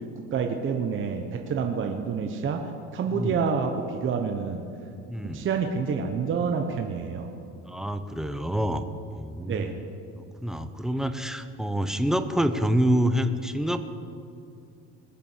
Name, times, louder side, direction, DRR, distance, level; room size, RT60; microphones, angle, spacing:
voice 1, 0.3-2.6 2.9-4.6 5.2-7.3 9.5-9.7, right 6 dB, 35° right, 4 dB, 1.0 m, -28 dB
voice 2, 3.1-3.4 5.1-5.5 7.7-9.8 10.2-13.8, equal, ahead, 9 dB, 0.7 m, -27 dB
21.0 x 7.1 x 7.3 m, 2.6 s
cardioid pair, 130°, 33 cm